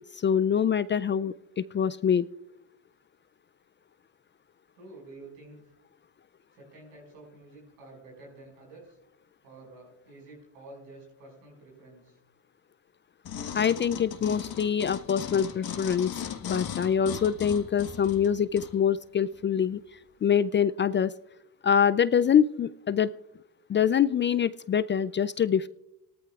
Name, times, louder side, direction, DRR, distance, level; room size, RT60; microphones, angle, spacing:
voice 1, 0.2-2.3 13.5-16.1 16.4-19.8 20.2-21.1 21.6-23.1 23.7-25.7, left 8 dB, 30° left, 16 dB, 0.3 m, -25 dB
voice 2, 4.7-5.8 6.5-9.0 9.4-12.2, right 2 dB, 90° right, -1 dB, 5.9 m, -49 dB
sound 1, 13.2-18.7 19.3-19.4, left 8 dB, 55° left, 1.4 m, -37 dB
18.5 x 13.5 x 2.4 m, 0.84 s
hypercardioid pair, 60°, 44 cm